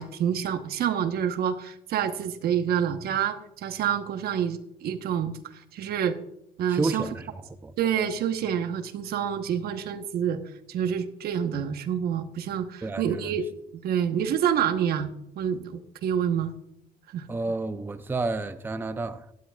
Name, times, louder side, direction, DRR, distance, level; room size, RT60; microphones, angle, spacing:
voice 1, 0.0-6.2 6.6-7.0 7.8-10.4 10.7-13.4 13.8-15.1 15.4-16.5 17.1-17.3, right 8 dB, 65° right, 1.1 m, -27 dB
voice 2, 6.7-7.3 7.6-7.7 12.8-13.3 17.3-19.3, right 3 dB, 10° right, 0.5 m, -30 dB
13.0 x 12.0 x 2.4 m
cardioid pair, 110°, 17 cm